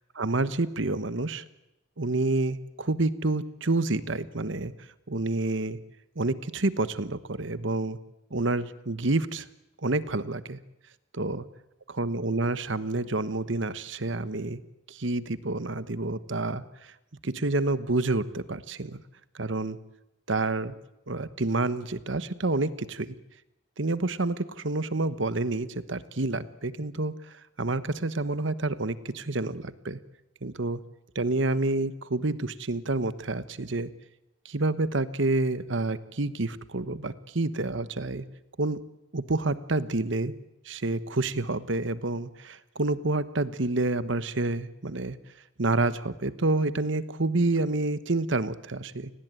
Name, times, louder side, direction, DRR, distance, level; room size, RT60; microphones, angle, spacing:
voice 1, 0.2-1.4 2.0-4.7 5.1-5.8 6.2-8.0 8.3-9.5 9.8-10.6 11.1-11.4 11.9-14.6 14.9-16.9 17.2-19.0 19.3-19.8 20.3-20.7 21.1-23.2 23.8-30.0 30.4-30.8 31.1-33.9 34.4-38.2 38.6-38.8 39.1-40.3 40.6-45.2 45.6-49.1, right 2 dB, 65° right, 14 dB, 1.2 m, -28 dB
29.0 x 19.5 x 9.2 m, 0.92 s
head